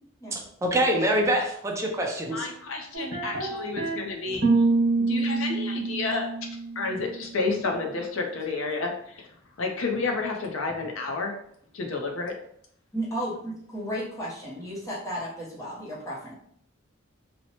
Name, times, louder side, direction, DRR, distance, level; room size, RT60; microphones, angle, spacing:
voice 1, 0.3-2.5, right 1 dB, 15° right, 0 dB, 0.4 m, -25 dB
voice 2, 2.3-4.5 5.1-6.3 6.8-9.3 9.6-11.4 11.7-12.3, left 3 dB, 75° left, 3 dB, 0.6 m, -30 dB
sound 1, 2.9-4.0 4.3-7.3, right 3 dB, 65° right, 0.9 m, -26 dB
voice 3, 12.9-16.3, equal, 15° left, -6 dB, 0.7 m, -34 dB
2.8 x 2.1 x 2.8 m, 0.66 s
head